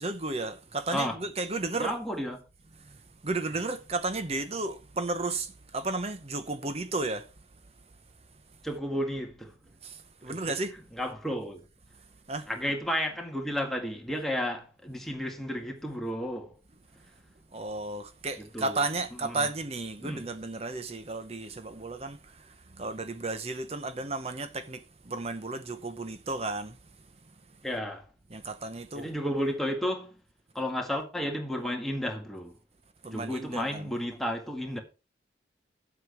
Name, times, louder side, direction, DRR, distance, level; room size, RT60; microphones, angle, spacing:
voice 1, 0.0-1.9 2.8-7.3 9.8-10.7 12.3-12.5 17.5-26.8 27.2-27.3 28.3-29.1 33.0-33.9, right 3 dB, 35° right, 0.9 m, -33 dB
voice 2, 1.8-2.4 8.6-9.6 10.3-10.5 10.9-11.7 12.5-16.5 18.4-18.8 19.2-19.5 20.0-20.2 27.6-28.1 28.9-30.1 30.5-32.6 33.1-34.8, equal, ahead, 1.9 m, -32 dB
10.0 x 7.9 x 4.6 m
head